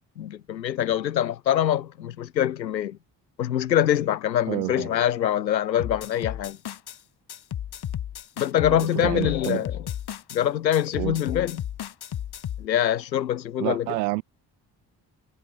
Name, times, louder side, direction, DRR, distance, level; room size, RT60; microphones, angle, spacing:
voice 1, 0.2-3.0 3.4-6.6 8.4-9.7 10.3-11.6 12.6-13.9, left 11 dB, 90° left, 2.4 m, -24 dB
voice 2, 4.5-4.9 8.7-9.6 11.0-11.2 13.6-14.2, right 23 dB, 80° right, 4.6 m, -29 dB
sound 1, 5.8-7.0 7.3-10.4 10.7-12.7, left 10 dB, 50° left, 2.3 m, -34 dB
figure-of-eight pair, 45°, 50 cm